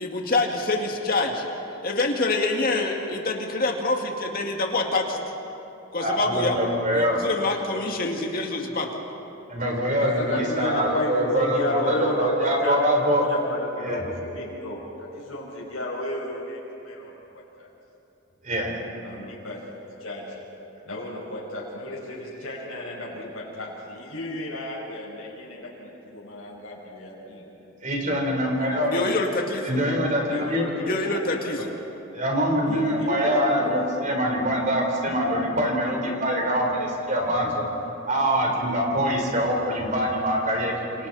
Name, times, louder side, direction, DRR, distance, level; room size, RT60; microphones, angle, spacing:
voice 1, 0.0-1.5 1.8-5.2 5.9-6.6 6.9-8.9 28.9-29.8 30.8-31.7, left 2 dB, 45° left, 1 dB, 2.3 m, -26 dB
voice 2, 6.0-7.3 9.5-11.6 11.9-13.2 13.8-14.0 18.4-18.8 27.8-28.9 29.6-30.7 32.1-37.7 38.1-41.1, equal, 35° right, 0 dB, 4.1 m, -24 dB
voice 3, 10.0-17.7 19.0-19.6 20.0-20.4 20.8-27.4 28.6-29.0 30.2-31.2 31.6-31.7 32.7-33.7, left 1 dB, 80° left, -6 dB, 5.4 m, -33 dB
28.5 x 28.0 x 4.3 m, 2.9 s
head